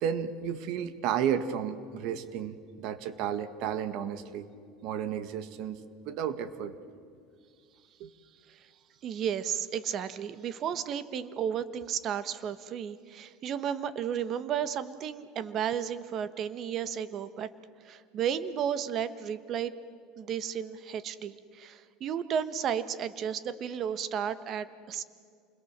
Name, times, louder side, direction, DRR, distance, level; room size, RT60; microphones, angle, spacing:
voice 1, 0.0-4.5 4.8-5.8 6.1-6.7 8.0-8.1, right 8 dB, 65° right, 11 dB, 1.8 m, -32 dB
voice 2, 9.0-17.5 17.8-19.7 20.2-25.0, right 8 dB, 40° right, 13 dB, 1.2 m, -33 dB
28.0 x 21.5 x 7.4 m, 2.2 s
supercardioid pair, 135°, 0 cm